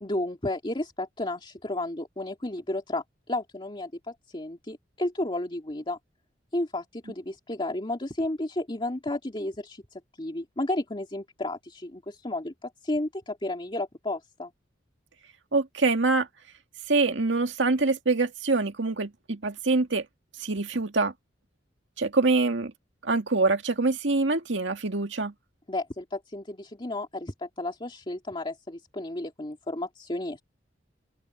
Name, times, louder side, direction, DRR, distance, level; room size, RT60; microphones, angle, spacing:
voice 1, 0.0-6.0 6.5-14.5 25.7-30.4, left 1 dB, 30° left, 2.6 m, -32 dB
voice 2, 15.5-16.3 16.9-20.1 20.4-21.1 22.0-22.7 23.0-25.3, right 3 dB, 80° right, 2.0 m, -25 dB
open air
head